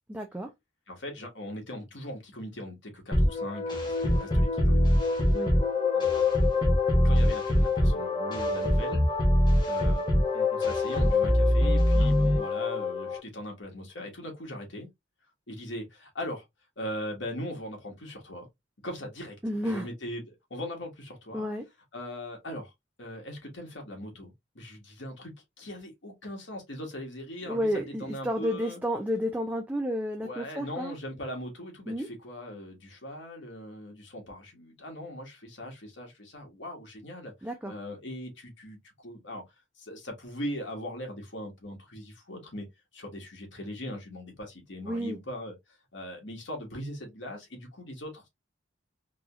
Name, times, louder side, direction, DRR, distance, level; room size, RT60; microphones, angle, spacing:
voice 1, 0.1-0.5 5.3-5.5 19.4-19.9 21.3-21.6 27.5-30.9 31.9-32.1 37.4-37.7 44.8-45.2, equal, 10° right, 0.4 m, -31 dB
voice 2, 0.9-5.2 5.9-6.5 7.0-9.0 9.6-10.1 10.3-14.9 15.5-16.4 16.8-18.5 18.8-19.4 19.6-21.5 21.9-22.7 23.0-28.8 30.2-39.4 39.8-42.7 42.9-45.6 45.9-48.3, left 1 dB, 70° left, 1.6 m, -40 dB
sound 1, 3.1-13.2, left 1 dB, 20° left, 1.0 m, -24 dB
3.8 x 2.9 x 2.4 m
head